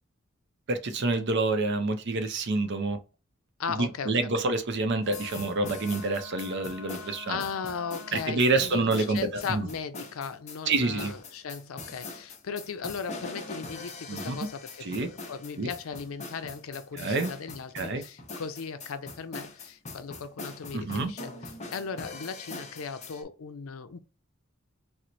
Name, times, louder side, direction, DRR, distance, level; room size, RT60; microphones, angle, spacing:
voice 1, 0.7-3.0 3.7-7.4 8.1-9.7 10.7-11.1 14.1-14.4 14.8-15.1 15.6-15.7 16.9-17.3 17.7-18.0 20.7-21.1, right 3 dB, 55° right, 0.5 m, -27 dB
voice 2, 3.6-4.3 7.0-24.0, left 5 dB, 85° left, 0.5 m, -37 dB
sound 1, 5.0-23.2, left 3 dB, 35° left, 0.7 m, -42 dB
Wind instrument woodwind instrument, 5.0-8.6, left 5 dB, 5° right, 1.1 m, -46 dB
4.3 x 2.0 x 2.6 m
head